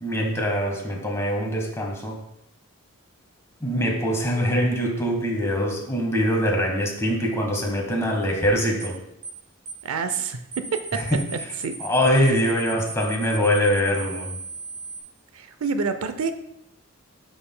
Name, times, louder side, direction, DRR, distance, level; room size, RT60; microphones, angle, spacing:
voice 1, 0.0-2.2 3.6-9.0 10.9-11.3 11.8-14.4, equal, 15° left, 0 dB, 1.3 m, -23 dB
sound 1, 8.8-9.0 9.2-9.4 9.7-9.8 10.1-10.3 10.5-15.0, right 4 dB, 25° right, 1.9 m, -36 dB
voice 2, 9.8-11.1 11.6-11.8 15.3-16.3, right 5 dB, 85° right, 9 dB, 0.5 m, -27 dB
9.8 x 5.7 x 2.2 m, 0.82 s
head